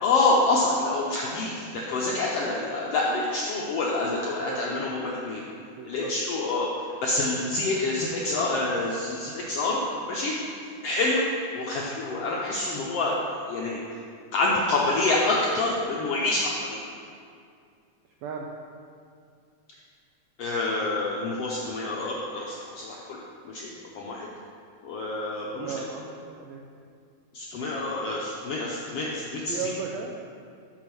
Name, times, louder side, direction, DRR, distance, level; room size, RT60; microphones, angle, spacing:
voice 1, 0.0-5.4 5.9-6.7 7.0-10.3 10.8-11.2 11.5-13.2 13.5-13.8 14.3-16.8 20.4-23.2 23.4-24.3 24.8-25.7 27.3-29.7, left 2 dB, 80° left, -3 dB, 1.4 m, -27 dB
voice 2, 4.3-4.8 5.8-6.1 18.2-18.5 25.5-26.6 29.5-30.2, right 5 dB, 85° right, 0 dB, 1.5 m, -35 dB
6.6 x 6.1 x 5.9 m, 2.3 s
omnidirectional pair, 3.7 m